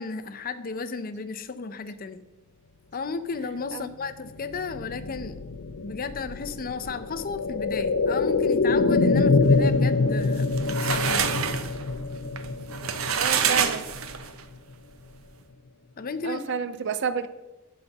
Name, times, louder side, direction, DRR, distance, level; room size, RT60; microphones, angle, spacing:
voice 1, 0.0-2.2 2.9-5.4 5.8-11.3 16.0-16.4, left 4 dB, 45° left, 11 dB, 0.6 m, -34 dB
sound 1, 4.4-14.2 14.5-14.6, left 3 dB, 85° left, 0.5 m, -25 dB
sound 2, 10.2-14.4, right 7 dB, 80° right, 0.7 m, -27 dB
voice 2, 13.1-13.8 16.2-17.3, right 6 dB, 60° right, 13 dB, 0.4 m, -30 dB
11.5 x 4.2 x 5.9 m, 1.1 s
head